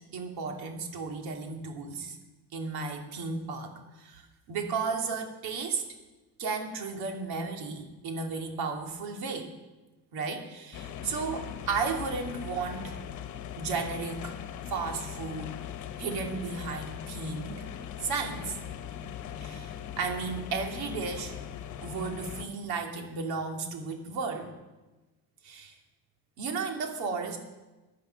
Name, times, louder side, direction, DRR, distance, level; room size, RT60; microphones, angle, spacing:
voice 1, 0.1-2.2 2.5-5.8 6.4-9.5 10.1-12.9 13.6-14.4 14.7-15.5 16.0-17.7 18.0-18.6 19.4-21.4 21.8-24.5 25.4-25.7 26.4-27.4, right 4 dB, 90° right, 3 dB, 2.5 m, -34 dB
sound 1, 10.7-22.5, left 9 dB, 55° left, 1.1 m, -40 dB
16.0 x 10.5 x 5.8 m, 1.1 s
cardioid pair, 160°, 37 cm